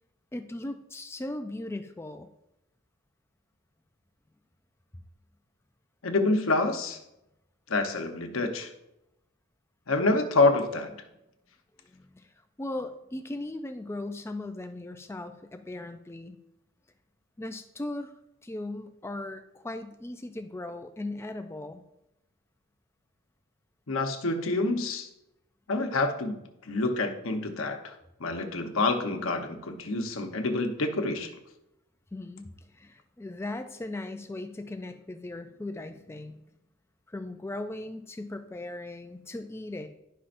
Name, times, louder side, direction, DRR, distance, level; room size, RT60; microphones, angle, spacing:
voice 1, 0.3-2.3 11.9-12.3 12.6-16.4 17.4-18.1 18.4-21.8 32.1-36.4 37.1-39.9, left 2 dB, 10° left, 8 dB, 0.3 m, -38 dB
voice 2, 6.0-7.0 7.7-8.7 9.9-10.9 23.9-25.1 25.7-31.3, left 2 dB, 70° left, 5 dB, 0.9 m, -27 dB
11.0 x 5.6 x 2.6 m, 0.86 s
head